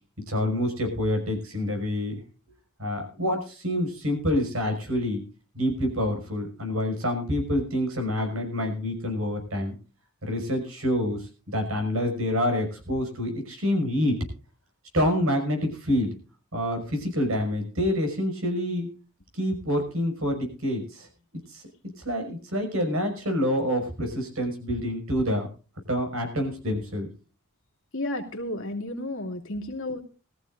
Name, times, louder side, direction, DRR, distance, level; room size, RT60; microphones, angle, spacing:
voice 1, 0.3-2.2 2.8-5.2 5.5-9.7 10.2-14.2 14.9-16.2 16.5-18.9 19.3-21.1 21.5-21.6 22.0-25.5 25.9-27.1, left 1 dB, 65° right, 5 dB, 6.0 m, -27 dB
voice 2, 27.9-30.0, left 1 dB, 65° left, 3 dB, 2.6 m, -32 dB
21.0 x 14.0 x 2.6 m, 0.35 s
head